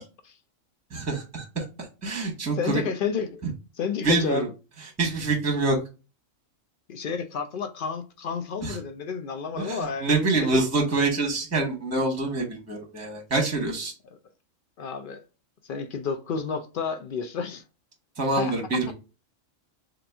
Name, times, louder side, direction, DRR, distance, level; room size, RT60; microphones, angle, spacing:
voice 1, 0.9-1.6 2.0-2.8 4.0-4.5 5.0-5.8 8.6-8.8 9.6-13.9 18.2-18.9, right 3 dB, 15° right, 0.9 m, -26 dB
voice 2, 2.5-3.4 3.8-4.5 6.9-10.7 14.8-15.2 15.7-17.6 18.4-18.9, left 5 dB, 75° left, 0.4 m, -31 dB
3.8 x 2.8 x 3.4 m
omnidirectional pair, 1.4 m